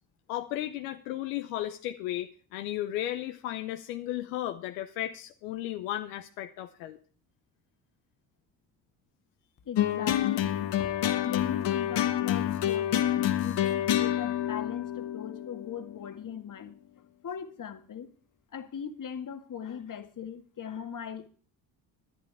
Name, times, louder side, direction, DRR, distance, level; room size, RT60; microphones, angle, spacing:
voice 1, 0.3-7.0, left 13 dB, 80° left, 8 dB, 0.8 m, -35 dB
voice 2, 9.6-16.8 17.2-18.1 18.5-21.3, left 8 dB, 40° left, 8 dB, 1.7 m, -39 dB
sound 1, 9.8-16.2, left 11 dB, 60° left, 1.4 m, -28 dB
18.0 x 10.5 x 3.5 m, 0.40 s
hypercardioid pair, 55°, 48 cm